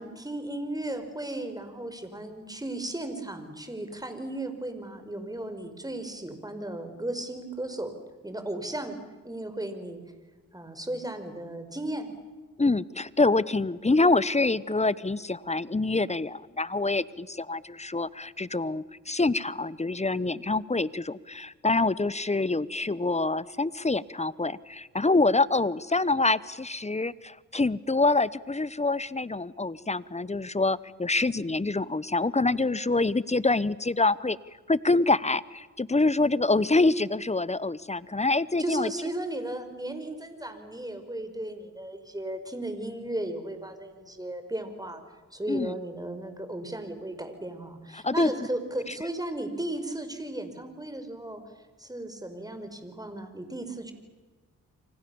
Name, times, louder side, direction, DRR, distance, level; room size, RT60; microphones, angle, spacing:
voice 1, 0.0-7.9 8.2-9.0 9.2-10.0 10.5-12.1 38.6-45.0 45.3-51.4 51.8-53.9, right 1 dB, 10° right, 8 dB, 5.1 m, -35 dB
voice 2, 12.6-34.4 34.7-38.9 45.5-45.7 47.9-48.3, left 3 dB, 20° left, 19 dB, 1.0 m, -26 dB
29.0 x 25.0 x 7.1 m, 1.3 s
supercardioid pair, 50°, 34 cm